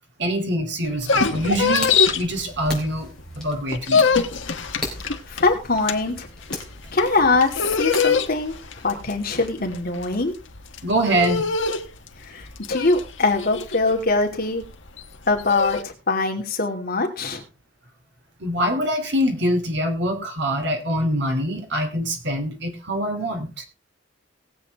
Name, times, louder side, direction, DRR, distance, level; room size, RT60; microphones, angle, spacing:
voice 1, 0.2-1.9 2.1-4.2 10.8-11.5 18.4-23.6, equal, 60° right, 5 dB, 2.8 m, -24 dB
sound 1, 0.9-3.2 3.5-15.8, left 5 dB, 70° left, 1.3 m, -24 dB
sound 2, 1.2-8.9, left 2 dB, 5° left, 3.9 m, -39 dB
voice 2, 4.8-6.3 6.9-8.5 8.8-10.3 12.2-14.6 15.3-17.4, left 3 dB, 50° left, 3 dB, 2.5 m, -23 dB
19.0 x 8.0 x 3.5 m, 0.32 s
head